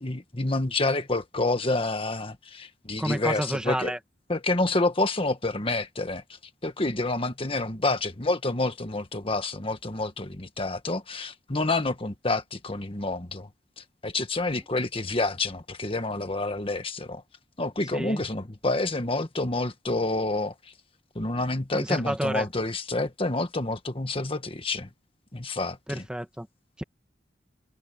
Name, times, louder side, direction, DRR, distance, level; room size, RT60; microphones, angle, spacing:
voice 1, 0.0-3.9 4.3-13.5 13.8-17.2 17.6-20.7 21.2-24.9 25.3-26.1, left 2 dB, 30° left, 1.7 m, -28 dB
voice 2, 3.0-4.0 17.9-18.2 21.7-22.5 25.9-26.5 26.8-26.9, equal, 5° right, 1.3 m, -29 dB
head